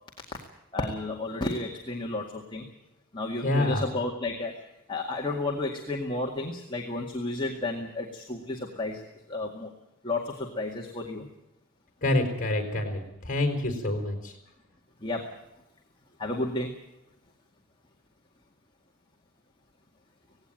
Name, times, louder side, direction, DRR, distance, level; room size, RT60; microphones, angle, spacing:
voice 1, 0.7-2.7 3.1-4.6 4.9-9.7 10.0-11.3 15.0-15.4 16.2-16.8, left 2 dB, 20° left, 0 dB, 2.0 m, -32 dB
voice 2, 3.4-3.9 12.0-14.4, left 1 dB, 40° left, 4 dB, 5.0 m, -27 dB
18.5 x 17.0 x 9.2 m, 0.88 s
head